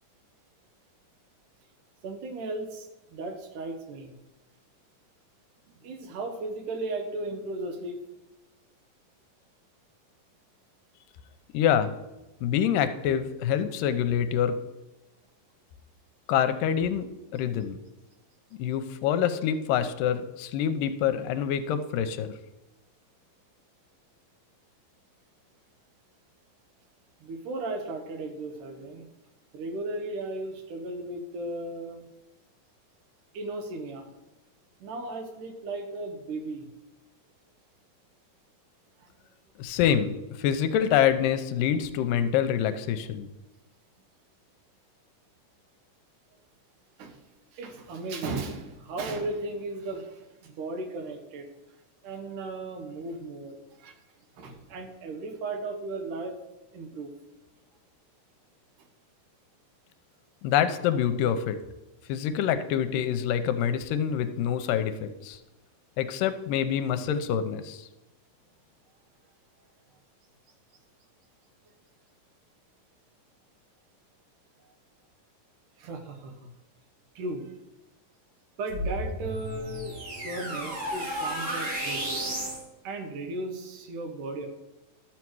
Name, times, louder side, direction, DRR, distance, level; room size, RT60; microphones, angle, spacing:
voice 1, 2.0-4.2 5.8-8.0 27.2-29.1 29.5-32.1 33.3-34.1 34.8-36.7 39.0-39.1 47.0-47.2 47.5-51.5 52.0-53.9 54.4-56.3 56.7-57.1 74.6-74.7 75.8-76.5 77.2-77.6 78.6-82.2 82.8-84.5, right 2 dB, 70° right, 5 dB, 2.5 m, -36 dB
voice 2, 11.5-11.9 12.4-14.6 16.3-17.1 17.3-17.8 18.6-22.3 39.6-43.3 60.4-61.6 62.1-65.4 66.0-67.9, left 9 dB, 85° left, 10 dB, 2.2 m, -26 dB
sound 1, 78.7-82.6, right 1 dB, 50° right, 3.6 m, -33 dB
12.0 x 7.1 x 4.7 m, 1.0 s
omnidirectional pair, 3.9 m